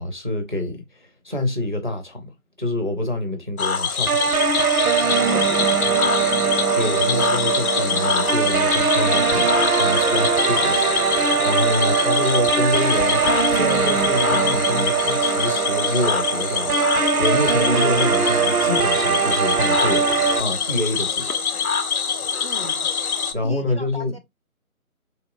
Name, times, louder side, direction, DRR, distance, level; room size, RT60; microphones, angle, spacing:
voice 1, 0.0-2.3 2.6-4.2 6.8-9.5 9.8-16.8 17.2-21.3 23.3-24.2, left 1 dB, 35° right, 0.4 m, -26 dB
Cricket / Frog, 3.6-23.3, left 6 dB, 75° left, 0.7 m, -25 dB
sound 1, 4.1-20.4, right 6 dB, 90° right, 0.6 m, -21 dB
voice 2, 5.2-6.4 22.4-22.9 23.4-24.2, equal, 45° left, 0.4 m, -36 dB
sound 2, 6.4-13.3, equal, 20° left, 0.7 m, -36 dB
3.0 x 2.9 x 2.3 m
figure-of-eight pair, 155°, 44 cm